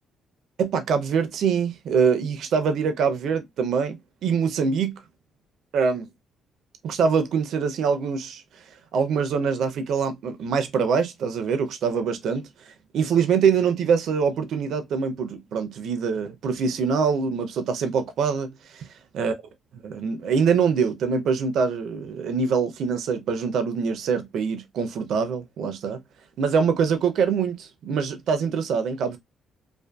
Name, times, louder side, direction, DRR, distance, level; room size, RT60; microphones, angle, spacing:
voice 1, 0.6-5.0 5.7-6.1 6.8-8.4 8.9-12.4 12.9-18.9 19.1-19.3 19.8-26.0 26.4-29.2, right 6 dB, 75° right, 0.5 m, -24 dB
2.5 x 2.4 x 2.2 m
cardioid pair, 90°, 0 cm